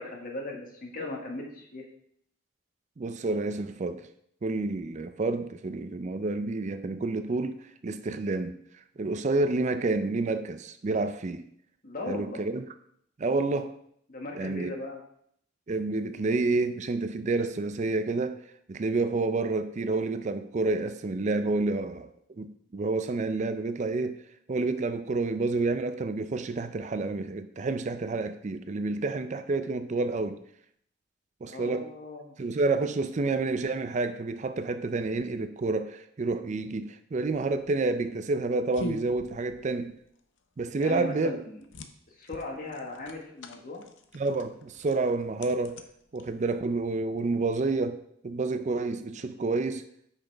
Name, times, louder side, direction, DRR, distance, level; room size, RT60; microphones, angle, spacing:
voice 1, 0.0-1.8 11.8-12.4 14.1-15.0 31.4-32.5 40.8-41.6 42.2-43.9, left 2 dB, 45° left, 1.6 m, -38 dB
voice 2, 3.0-4.1 4.4-8.6 9.0-11.5 12.1-12.6 13.2-13.7 14.3-14.7 15.7-18.4 18.7-22.1 22.4-24.2 24.5-30.4 31.4-31.9 32.4-40.0 40.6-41.4 44.1-45.8 46.1-49.9, right 3 dB, 40° right, 0.4 m, -29 dB
sound 1, 37.2-46.8, left 2 dB, 70° left, 0.7 m, -44 dB
8.7 x 5.8 x 3.4 m
head